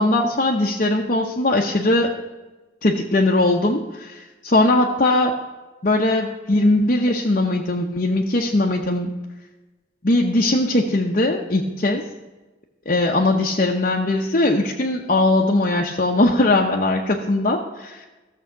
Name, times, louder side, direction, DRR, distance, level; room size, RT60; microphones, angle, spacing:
voice 1, 0.0-2.1 2.8-5.3 5.8-9.1 10.0-12.0 12.9-18.1, left 2 dB, 45° left, -1 dB, 0.8 m, -20 dB
14.0 x 7.0 x 5.8 m, 1.2 s
head